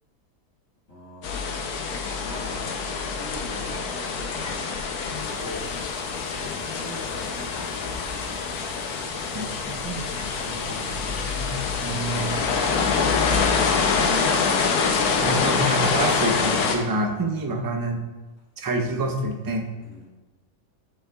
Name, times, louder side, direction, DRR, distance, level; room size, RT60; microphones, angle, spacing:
voice 1, 0.9-1.4 1.7-4.7 5.1-5.7 6.3-8.1 17.1-17.3 19.8-20.1, equal, 60° left, -8 dB, 2.2 m, -42 dB
sound 1, 1.2-16.8, left 5 dB, 90° left, 1.2 m, -25 dB
sound 2, 5.2-16.8, left 2 dB, 35° left, 0.8 m, -45 dB
voice 2, 10.4-12.5 15.2-18.0 18.6-19.7, right 2 dB, 25° right, 2 dB, 0.4 m, -28 dB
9.2 x 6.5 x 2.3 m, 1.2 s
omnidirectional pair, 1.6 m